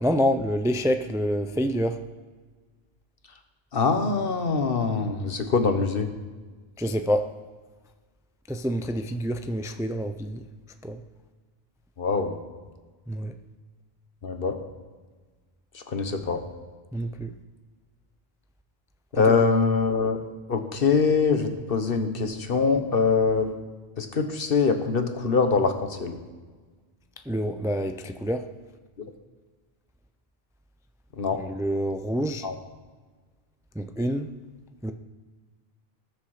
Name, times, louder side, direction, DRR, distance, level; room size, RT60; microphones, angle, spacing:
voice 1, 0.0-2.0 6.8-7.3 8.5-10.4 10.8-11.0 13.1-13.3 16.9-17.3 19.3-19.4 27.3-28.5 31.3-32.5 33.8-34.3 34.8-34.9, equal, 5° right, 8 dB, 0.4 m, -27 dB
voice 2, 3.7-6.1 12.0-12.4 14.2-14.6 15.7-16.4 19.1-20.2 20.5-23.6 24.0-26.2 31.2-31.4 32.4-32.5, left 4 dB, 65° left, 6 dB, 1.4 m, -23 dB
19.5 x 6.8 x 4.9 m, 1.4 s
omnidirectional pair, 1.0 m